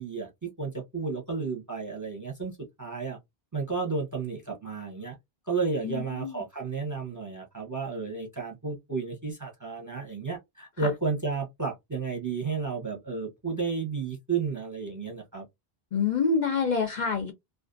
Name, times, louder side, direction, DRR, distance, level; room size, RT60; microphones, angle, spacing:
voice 1, 0.0-3.2 3.5-5.2 5.5-15.4, right 4 dB, 20° right, 0.6 m, -32 dB
voice 2, 5.8-6.4 10.8-10.9 15.9-17.3, left 5 dB, 55° left, 0.5 m, -27 dB
2.5 x 2.3 x 2.4 m
omnidirectional pair, 1.1 m